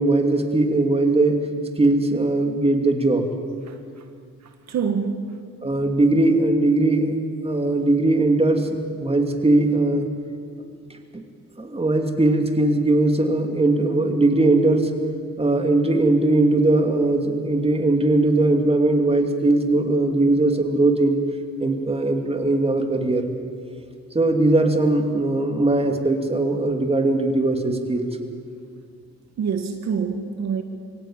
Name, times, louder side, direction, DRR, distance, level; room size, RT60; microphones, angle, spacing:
voice 1, 0.0-1.4 1.8-3.3 5.6-7.1 7.4-8.7 9.0-10.1 11.6-14.9 15.4-21.2 21.6-23.3 24.1-28.1, right 2 dB, 20° right, 4 dB, 2.8 m, -19 dB
voice 2, 3.7-4.0 4.4-5.4 29.4-30.6, right 6 dB, 60° right, 6 dB, 1.7 m, -26 dB
23.0 x 17.0 x 8.9 m, 2.2 s
cardioid pair, 90°, 30 cm